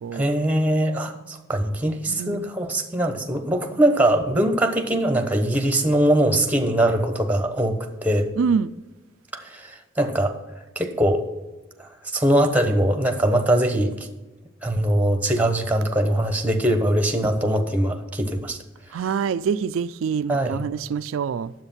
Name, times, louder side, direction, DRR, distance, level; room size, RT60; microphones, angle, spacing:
voice 1, 0.1-8.3 9.5-9.7 10.0-10.3 10.8-11.2 12.1-13.9 14.6-18.6 20.3-20.6, right 1 dB, 10° right, 1.0 m, -21 dB
voice 2, 2.1-2.5 8.4-8.7 18.9-21.5, right 6 dB, 85° right, 0.3 m, -25 dB
9.9 x 7.7 x 5.6 m
head